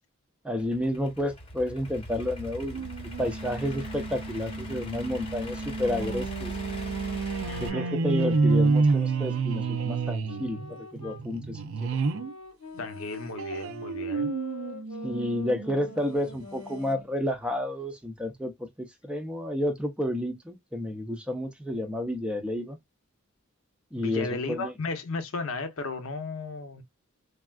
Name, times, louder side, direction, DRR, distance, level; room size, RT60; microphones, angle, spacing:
voice 1, 0.4-2.9 3.2-6.5 7.6-11.9 15.0-22.8 23.9-24.7, left 1 dB, 5° right, 0.4 m, -31 dB
Idling / Accelerating revving vroom, 0.6-7.7, left 1 dB, 25° left, 0.7 m, -41 dB
sound 1, 2.7-12.3 12.8-15.8 16.4-16.5 16.7-16.8, right 4 dB, 70° right, 0.4 m, -29 dB
sound 2, 5.8-11.3 11.9-17.1, left 3 dB, 90° left, 1.0 m, -44 dB
voice 2, 7.5-8.0 12.8-14.3 24.0-26.8, left 3 dB, 75° left, 0.7 m, -35 dB
3.4 x 2.3 x 2.2 m
head